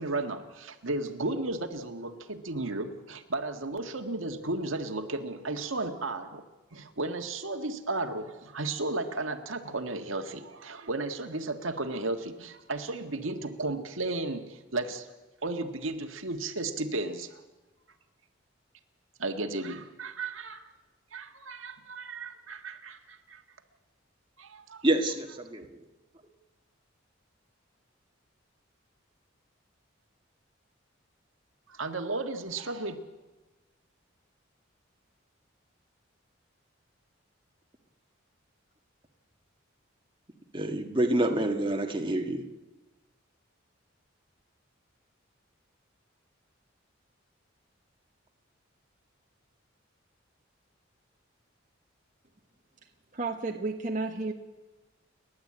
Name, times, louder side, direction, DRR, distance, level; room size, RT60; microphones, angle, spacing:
voice 1, 0.0-6.4 6.7-15.1 15.4-17.4 19.2-20.6 21.1-23.4 24.4-24.8 31.7-33.0, right 2 dB, 80° right, 6 dB, 1.8 m, -34 dB
voice 2, 24.8-25.6 40.5-42.4, right 1 dB, 25° right, 3 dB, 1.7 m, -27 dB
voice 3, 53.1-54.3, right 3 dB, 40° right, 2 dB, 1.3 m, -32 dB
30.0 x 11.5 x 8.7 m, 1.1 s
head